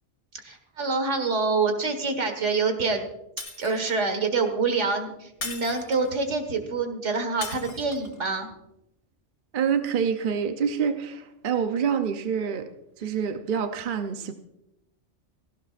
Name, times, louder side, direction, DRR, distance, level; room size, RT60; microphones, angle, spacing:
voice 1, 0.4-3.1 3.6-8.5, right 4 dB, 75° right, 6 dB, 2.0 m, -26 dB
Shatter, 3.4-4.1 5.4-6.2 7.4-8.2, left 3 dB, 70° left, 1.9 m, -38 dB
voice 2, 9.5-12.7 13.0-14.3, right 7 dB, 50° right, 7 dB, 0.8 m, -26 dB
18.0 x 15.5 x 2.5 m, 0.84 s
omnidirectional pair, 1.2 m